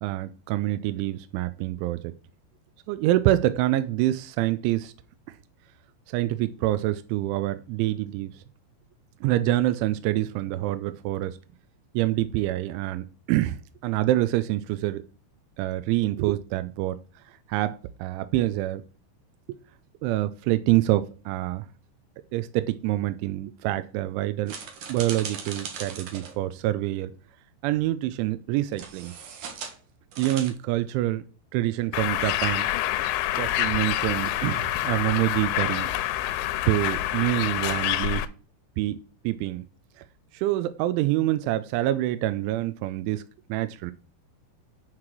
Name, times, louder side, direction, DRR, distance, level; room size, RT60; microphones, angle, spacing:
voice 1, 0.0-2.1 2.9-4.9 5.3-5.4 6.1-8.4 9.2-11.4 11.9-13.6 13.8-15.0 15.6-17.0 17.5-18.8 20.0-21.7 22.3-24.5 24.9-27.1 27.6-29.1 30.2-31.2 31.5-32.7 33.4-35.9 36.7-38.2 38.8-39.0 39.2-39.7 40.3-43.2 43.5-43.9, right 15 dB, 85° right, 3.0 m, -26 dB
sound 1, 24.5-26.4 28.7-29.8 30.1-30.5, right 6 dB, 60° right, 2.2 m, -38 dB
Bird, 31.9-38.3, left 14 dB, 85° left, 3.0 m, -27 dB
9.6 x 4.9 x 7.5 m
omnidirectional pair, 5.3 m